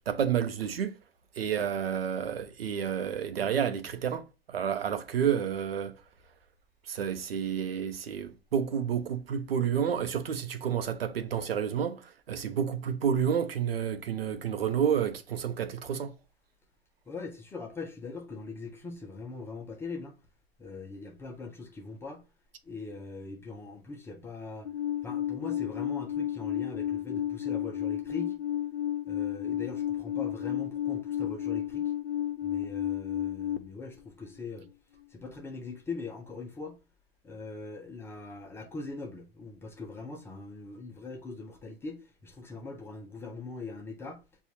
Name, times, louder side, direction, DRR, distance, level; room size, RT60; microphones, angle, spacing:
voice 1, 0.1-1.0 1.3-6.0 6.8-16.1, right 8 dB, 70° right, 0.7 m, -30 dB
voice 2, 17.1-20.2 20.6-22.2 22.6-24.7 25.0-28.4 29.1-31.9 32.4-34.7 35.1-36.8 37.2-44.2, left 3 dB, 10° left, 0.4 m, -41 dB
Alarm, 24.6-33.6, left 11 dB, 85° left, 0.5 m, -32 dB
6.7 x 2.3 x 2.7 m
figure-of-eight pair, 100°, 31 cm